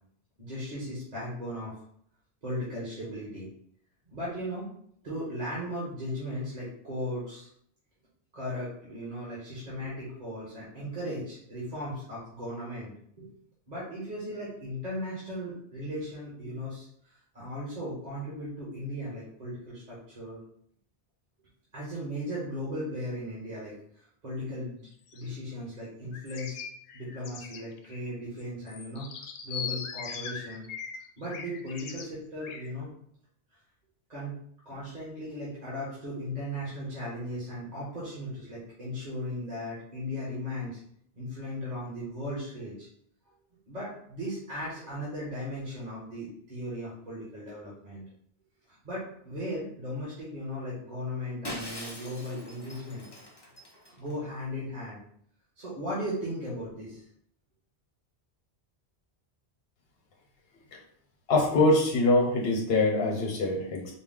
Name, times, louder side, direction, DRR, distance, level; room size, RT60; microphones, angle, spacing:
voice 1, 0.4-1.8 2.4-3.5 4.1-4.7 5.0-7.5 8.3-12.9 13.2-13.3 13.7-20.4 21.7-24.9 25.1-26.6 26.9-29.1 29.4-30.6 31.2-32.9 34.1-34.4 34.6-40.8 41.1-42.9 43.7-48.0 48.7-53.0 53.9-55.0 55.6-57.0, equal, 40° right, -7 dB, 1.2 m, -37 dB
sound 1, 24.9-25.3 26.1-28.1 28.4-28.5 28.7-32.1 32.4-32.7, left 6 dB, 90° left, 0.9 m, -40 dB
Shatter, 51.4-54.1, equal, 25° left, 0.8 m, -42 dB
voice 2, 61.3-63.9, left 2 dB, 65° left, 0 dB, 1.1 m, -24 dB
4.3 x 2.2 x 3.7 m, 0.66 s
omnidirectional pair, 1.1 m